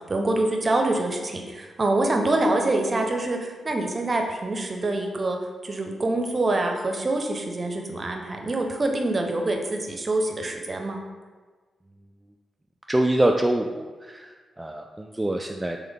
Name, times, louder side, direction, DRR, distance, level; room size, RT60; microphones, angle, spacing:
voice 1, 0.1-5.4 5.6-11.0, right 2 dB, 45° right, 3 dB, 0.7 m, -25 dB
voice 2, 12.9-15.8, right 1 dB, 15° right, 2 dB, 0.3 m, -25 dB
3.7 x 3.3 x 3.5 m, 1.4 s
supercardioid pair, 40°, 0 cm